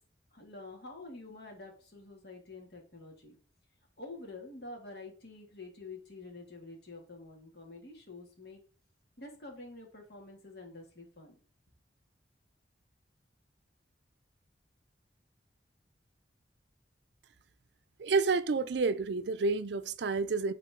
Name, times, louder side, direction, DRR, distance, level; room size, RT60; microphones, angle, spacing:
voice 1, 0.3-3.3 4.0-8.6 9.2-11.3, left 2 dB, 60° left, 2.4 m, -48 dB
voice 2, 18.0-20.5, right 4 dB, 70° right, 0.5 m, -29 dB
11.0 x 4.1 x 3.7 m
head